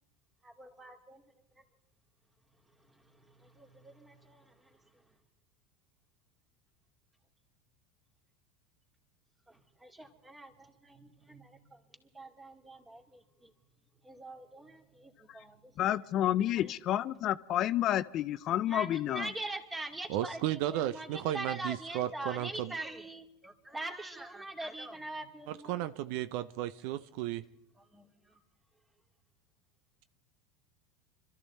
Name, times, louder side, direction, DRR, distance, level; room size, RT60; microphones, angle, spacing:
voice 1, 0.4-1.2 1.6-1.7 2.7-5.0 9.5-13.5 14.0-15.9 16.6-16.7 18.7-25.9 27.8-28.4, right 2 dB, 15° right, 2.2 m, -44 dB
voice 2, 15.8-19.3, left 12 dB, 50° left, 0.5 m, -30 dB
voice 3, 20.1-22.7 25.5-27.4, right 13 dB, 65° right, 0.5 m, -34 dB
25.0 x 13.5 x 4.2 m
hypercardioid pair, 95°, 0 cm